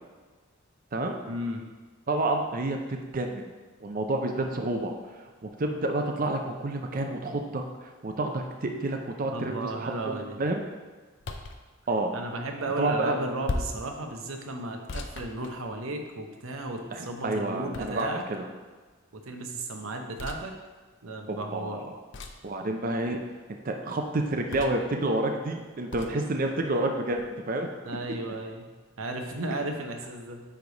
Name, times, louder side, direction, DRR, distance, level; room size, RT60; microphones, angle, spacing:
voice 1, 1.3-1.6 9.3-10.4 12.1-18.2 19.1-20.6 21.0-21.8 27.8-28.7 29.0-30.4, right 2 dB, 85° right, 4 dB, 0.8 m, -34 dB
voice 2, 2.1-3.4 3.8-4.9 5.4-10.6 11.9-12.1 12.8-13.2 16.9-18.5 21.3-21.9 22.4-23.2 23.6-27.7, right 2 dB, 45° right, 4 dB, 0.6 m, -29 dB
sound 1, 11.2-11.6 13.4-13.9 14.9-16.1 17.7-18.3 20.2-20.4 22.1-22.5 24.5-24.9 25.9-26.1, left 2 dB, 60° left, 0.5 m, -36 dB
9.6 x 3.4 x 4.0 m, 1.3 s
head